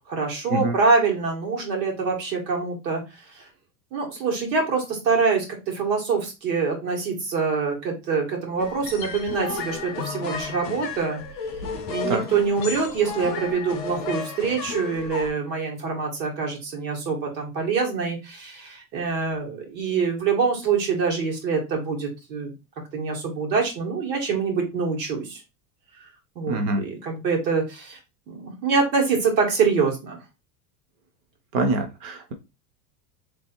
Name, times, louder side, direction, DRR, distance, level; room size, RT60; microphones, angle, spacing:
voice 1, 0.1-3.5 3.9-11.2 11.9-22.5 22.9-25.4 26.4-28.0 28.3-30.2, right 5 dB, 90° right, 0 dB, 2.1 m, -25 dB
sound 1, 8.6-15.3, left 5 dB, 20° left, 0.3 m, -33 dB
voice 2, 26.5-26.8 31.5-32.3, right 2 dB, 35° right, 5 dB, 0.5 m, -25 dB
3.3 x 2.8 x 4.3 m, 0.26 s
supercardioid pair, 170°, 50 cm